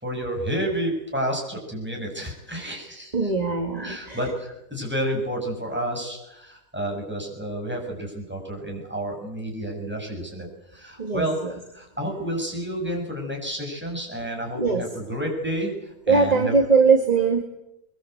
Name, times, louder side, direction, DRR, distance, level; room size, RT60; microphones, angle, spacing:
voice 1, 0.0-3.3 3.7-16.5, right 1 dB, 5° right, 0 dB, 6.9 m, -30 dB
voice 2, 3.1-4.2 11.0-11.5 14.5-14.8 16.1-17.4, right 4 dB, 25° right, 4 dB, 2.2 m, -21 dB
22.5 x 22.0 x 8.0 m, 0.87 s
omnidirectional pair, 1.7 m